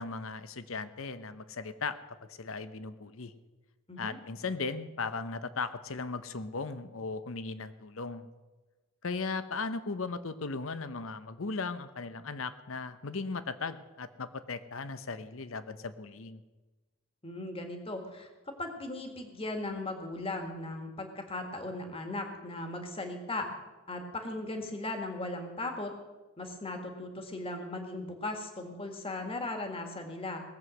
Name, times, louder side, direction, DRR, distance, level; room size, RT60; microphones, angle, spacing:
voice 1, 0.0-1.9 2.3-3.3 4.0-8.3 9.0-16.4, left 4 dB, 65° left, 12 dB, 0.8 m, -37 dB
voice 2, 17.2-18.3 18.6-23.5 23.9-25.9 26.4-30.4, left 2 dB, 25° left, 5 dB, 1.8 m, -37 dB
19.0 x 7.8 x 6.3 m, 1.2 s
head